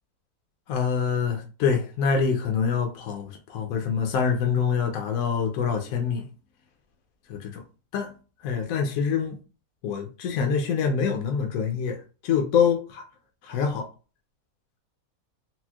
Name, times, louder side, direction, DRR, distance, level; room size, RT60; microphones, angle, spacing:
voice 1, 0.7-6.3 7.3-7.6 7.9-8.1 8.4-9.4 9.8-12.0 12.2-13.0 13.4-13.9, left 6 dB, 75° left, 1.0 m, -25 dB
4.2 x 2.0 x 2.2 m
omnidirectional pair, 1.6 m